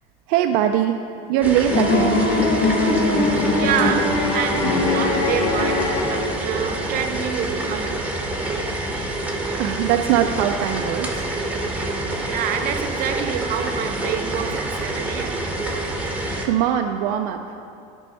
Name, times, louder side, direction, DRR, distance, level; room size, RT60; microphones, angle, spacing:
voice 1, 0.3-1.0 1.3-2.3 9.3-11.4 16.4-17.6, right 10 dB, 75° right, 0.5 m, -22 dB
sound 1, 1.4-16.4, right 2 dB, 10° right, 1.1 m, -27 dB
sound 2, 1.7-6.6, left 3 dB, 60° left, 1.7 m, -21 dB
voice 2, 3.5-8.1 12.2-15.5, right 8 dB, 55° right, 0.8 m, -27 dB
12.5 x 5.3 x 4.2 m
supercardioid pair, 115°, 18 cm